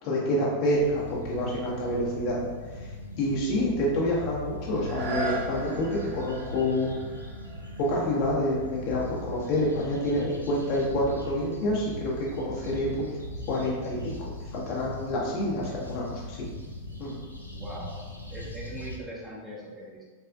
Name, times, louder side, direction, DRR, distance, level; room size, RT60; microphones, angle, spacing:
voice 1, 0.0-2.5 2.8-2.9 3.2-6.9 7.9-13.1 13.5-14.1 14.5-16.4 17.0-17.2, left 1 dB, 45° left, -5 dB, 1.0 m, -28 dB
sound 1, 0.7-19.0, left 1 dB, 85° left, 0.4 m, -40 dB
sound 2, 4.7-10.4 11.0-11.1, right 2 dB, 50° right, 0.7 m, -39 dB
voice 2, 17.5-18.0 18.3-20.0, right 1 dB, 10° right, -5 dB, 0.7 m, -40 dB
3.4 x 3.3 x 2.3 m, 1.4 s
figure-of-eight pair, 90°, 0 cm